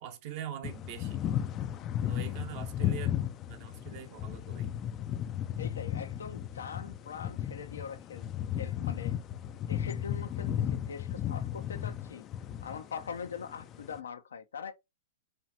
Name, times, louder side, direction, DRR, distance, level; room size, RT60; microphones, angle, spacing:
voice 1, 0.0-1.2 2.0-4.7, right 10 dB, 50° right, 1.0 m, -43 dB
sound 1, 0.6-14.0, left 10 dB, 35° left, 0.4 m, -35 dB
voice 2, 5.6-8.3 8.6-9.2 9.7-12.3 12.6-14.7, left 6 dB, 85° left, 0.6 m, -42 dB
4.5 x 2.5 x 2.7 m
hypercardioid pair, 120°, 0 cm